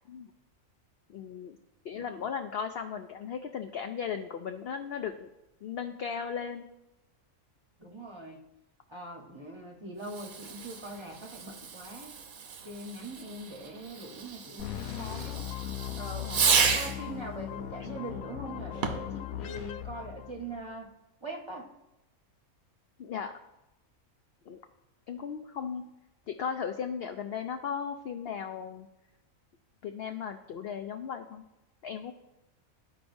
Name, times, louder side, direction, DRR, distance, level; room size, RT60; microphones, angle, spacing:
voice 1, 1.1-1.6 1.8-5.3 5.6-6.6 16.2-16.4 23.0-23.3 24.5-24.6 25.1-25.8 26.3-28.9 29.8-31.4 31.8-32.1, left 7 dB, 65° left, 6 dB, 0.6 m, -36 dB
voice 2, 7.8-8.4 8.9-12.1 12.6-15.4 16.0-20.9 21.2-21.7, right 1 dB, 25° right, 1 dB, 0.9 m, -42 dB
Fireworks, 10.0-17.1 18.7-19.2, right 6 dB, 80° right, 1.3 m, -32 dB
sound 1, 14.6-20.7, left 12 dB, 85° left, 1.0 m, -38 dB
14.0 x 4.8 x 2.6 m, 0.93 s
omnidirectional pair, 1.4 m